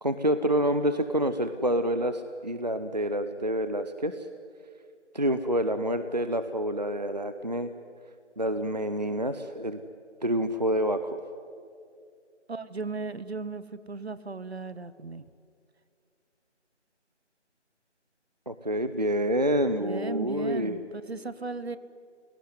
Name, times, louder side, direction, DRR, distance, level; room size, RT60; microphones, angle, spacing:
voice 1, 0.0-4.3 5.1-7.7 8.4-9.8 10.2-11.2 18.5-20.8, equal, 35° right, 10 dB, 0.6 m, -27 dB
voice 2, 12.5-15.3 19.8-21.8, right 3 dB, 60° right, 15 dB, 1.1 m, -36 dB
25.0 x 17.5 x 9.7 m, 2.4 s
figure-of-eight pair, 175°, 36 cm